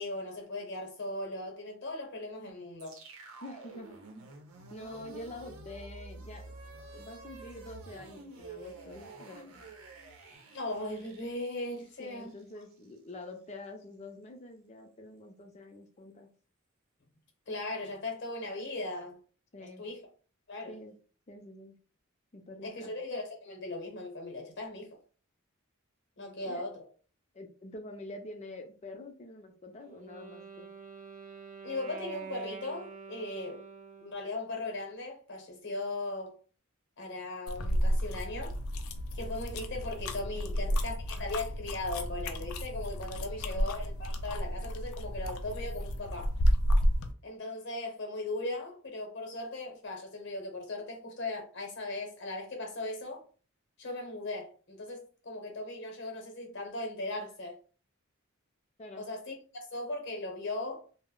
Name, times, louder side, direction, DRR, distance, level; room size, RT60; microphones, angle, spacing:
voice 1, 0.0-3.0 10.5-12.3 17.5-19.2 19.6-20.0 20.5-20.7 22.6-25.0 26.2-26.7 31.6-33.6 34.0-36.4 37.0-38.5 39.1-46.3 47.2-53.2 53.8-57.6 58.9-60.8, left 2 dB, 55° left, 0.8 m, -38 dB
sound 1, 2.8-13.0, right 3 dB, 85° right, 0.7 m, -49 dB
voice 2, 3.4-4.0 4.7-6.5 6.9-9.6 12.0-16.3 19.5-19.9 20.7-21.0 21.3-21.7 22.3-23.0 26.4-26.6 27.3-30.7 40.3-40.6 41.2-41.3 43.2-43.7 58.8-59.1, left 2 dB, 30° left, 0.5 m, -46 dB
Wind instrument woodwind instrument, 29.8-34.4, right 5 dB, 35° right, 0.4 m, -46 dB
sound 2, 37.5-47.1, equal, 90° left, 0.4 m, -31 dB
2.1 x 2.0 x 3.7 m
head